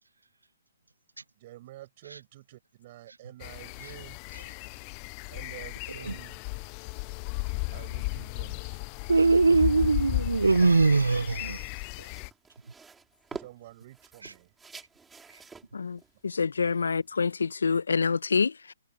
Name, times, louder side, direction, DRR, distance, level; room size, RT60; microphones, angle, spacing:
voice 1, 1.4-4.2 5.3-6.4 7.7-8.8 9.5-9.6 13.3-14.5, right 15 dB, 45° right, 6.5 m, -49 dB
sound 1, 3.4-12.3, left 33 dB, 30° left, 0.7 m, -35 dB
sound 2, 9.0-17.5, right 5 dB, 10° right, 6.2 m, -50 dB
voice 2, 9.1-11.6, right 3 dB, 80° right, 0.6 m, -21 dB
voice 3, 15.7-18.7, left 5 dB, 75° left, 1.4 m, -27 dB
figure-of-eight pair, 130°, 0 cm